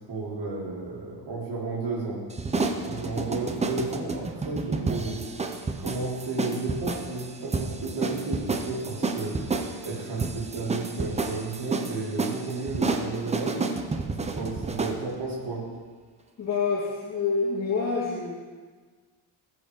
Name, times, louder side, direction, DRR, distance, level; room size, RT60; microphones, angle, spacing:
voice 1, 0.1-2.2 2.8-9.6 9.8-13.7 14.2-15.6, right 3 dB, 55° right, -5 dB, 4.0 m, -33 dB
sound 1, 2.3-15.0, right 3 dB, 15° right, 0.6 m, -30 dB
voice 2, 16.4-18.3, left 4 dB, 35° left, -5 dB, 1.8 m, -27 dB
20.0 x 7.1 x 5.0 m, 1.5 s
cardioid pair, 160°, 47 cm